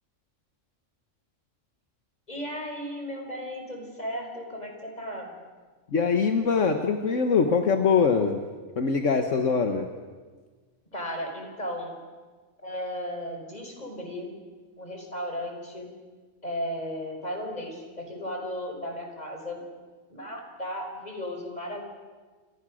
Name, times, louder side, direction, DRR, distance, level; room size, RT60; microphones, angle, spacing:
voice 1, 2.3-5.3 10.9-12.0 12.6-14.4 14.8-15.9 16.4-19.6 20.1-21.8, equal, 30° left, 2 dB, 5.3 m, -35 dB
voice 2, 5.9-8.4 8.8-9.9, left 5 dB, 70° left, 5 dB, 1.7 m, -23 dB
28.5 x 26.5 x 6.5 m, 1.4 s
omnidirectional pair, 1.3 m